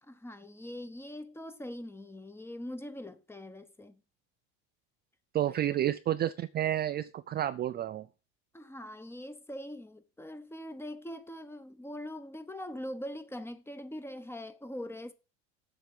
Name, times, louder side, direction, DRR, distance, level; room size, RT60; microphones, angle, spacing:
voice 1, 0.0-4.0 8.5-15.1, left 1 dB, 5° left, 1.0 m, -42 dB
voice 2, 5.3-8.1, right 12 dB, 30° right, 0.5 m, -30 dB
8.2 x 6.9 x 7.5 m
supercardioid pair, 125°, 33 cm